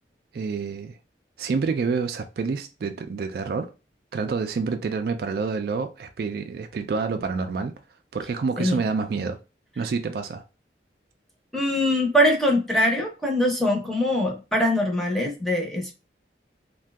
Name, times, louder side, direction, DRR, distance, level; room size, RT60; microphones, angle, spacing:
voice 1, 0.3-1.0 1.4-3.7 4.1-7.7 8.1-9.4 9.8-10.4, right 4 dB, 60° right, 0.3 m, -28 dB
voice 2, 11.5-15.9, left 1 dB, ahead, 0.7 m, -22 dB
2.6 x 2.2 x 3.3 m
head